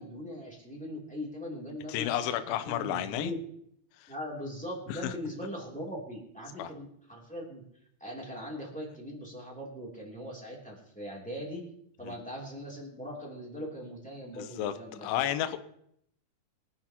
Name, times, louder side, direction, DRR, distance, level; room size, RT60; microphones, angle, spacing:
voice 1, 0.0-3.4 4.1-7.6 8.0-11.7 12.0-15.1 15.4-15.6, equal, 5° left, -3 dB, 1.7 m, -40 dB
voice 2, 1.9-3.3 4.0-4.1 4.9-5.1 6.6-6.7 12.0-12.2 14.3-14.7 15.0-15.6, left 12 dB, 90° left, 9 dB, 2.1 m, -32 dB
24.0 x 8.9 x 3.0 m, 0.72 s
omnidirectional pair, 5.3 m